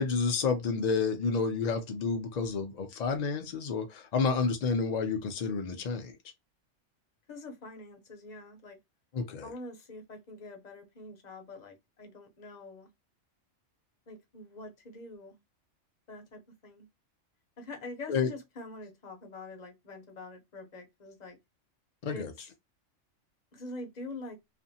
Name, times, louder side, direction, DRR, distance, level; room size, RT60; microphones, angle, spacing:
voice 1, 0.0-6.1 9.1-9.5 18.1-18.3 22.0-22.3, left 5 dB, 70° left, 0.4 m, -30 dB
voice 2, 7.3-8.8 9.4-12.9 14.1-15.4 16.1-16.9 17.6-21.4 22.1-22.5 23.5-24.4, left 2 dB, 40° left, 0.7 m, -45 dB
2.5 x 2.5 x 2.6 m
omnidirectional pair, 1.3 m